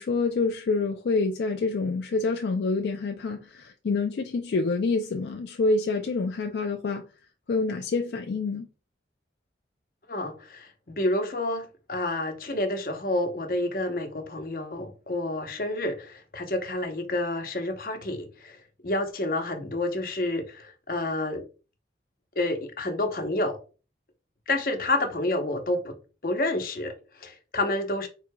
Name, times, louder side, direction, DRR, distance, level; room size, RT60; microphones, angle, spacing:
voice 1, 0.0-7.0 7.5-8.7, left 3 dB, 70° left, 0.4 m, -27 dB
voice 2, 10.1-18.6 18.8-21.4 22.4-23.6 24.5-26.0 26.2-28.1, left 1 dB, 50° left, 0.8 m, -29 dB
4.7 x 3.7 x 2.2 m
head